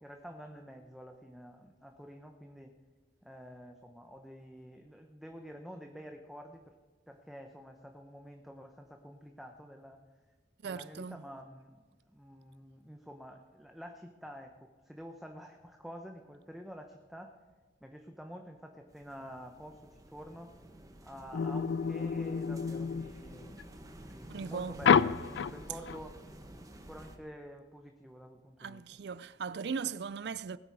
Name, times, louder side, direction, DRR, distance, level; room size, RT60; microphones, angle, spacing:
voice 1, 0.0-2.7 3.2-6.7 7.1-10.0 10.6-11.8 12.1-17.3 17.8-20.5 21.0-23.7 24.0-26.1 26.7-28.8, equal, ahead, 0.8 m, -49 dB
voice 2, 10.6-11.2 24.3-24.8 28.6-30.6, right 6 dB, 65° right, 0.4 m, -38 dB
sound 1, 18.9-27.2, right 1 dB, 20° right, 1.1 m, -51 dB
sound 2, 21.3-23.6 24.8-26.0, left 6 dB, 75° left, 0.4 m, -29 dB
19.5 x 8.8 x 4.7 m
head